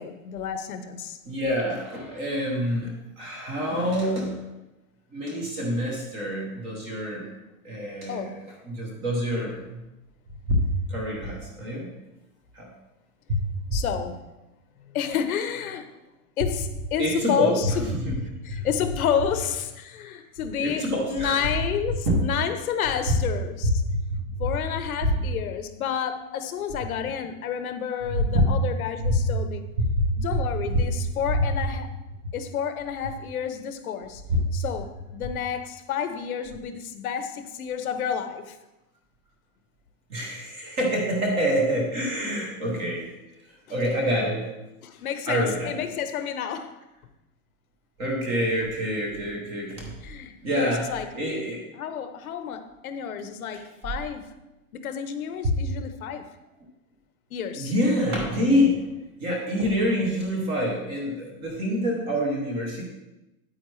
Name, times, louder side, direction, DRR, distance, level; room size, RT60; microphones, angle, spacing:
voice 1, 0.0-1.2 8.1-8.3 13.7-14.3 14.9-15.9 16.4-23.8 24.1-29.6 30.2-31.9 32.3-34.2 34.5-38.6 44.8-46.8 50.0-51.1 51.7-54.3 54.7-56.3 57.3-57.7, left 8 dB, 75° left, 9 dB, 1.0 m, -30 dB
voice 2, 1.3-4.4 5.1-7.3 7.6-9.8 10.5-11.9 12.5-12.7 13.3-13.8 17.0-18.2 18.5-18.6 20.6-21.5 22.1-22.2 23.1-23.2 23.6-24.6 25.0-25.2 28.2-28.6 29.0-29.3 29.8-30.2 31.4-31.5 34.3-34.4 40.1-43.1 43.5-44.5 45.3-45.8 48.0-49.9 50.4-51.6 55.4-55.6 57.6-58.9 59.2-62.8, equal, 15° right, 0 dB, 0.7 m, -26 dB
9.2 x 8.8 x 3.2 m, 1.0 s
supercardioid pair, 180°, 44 cm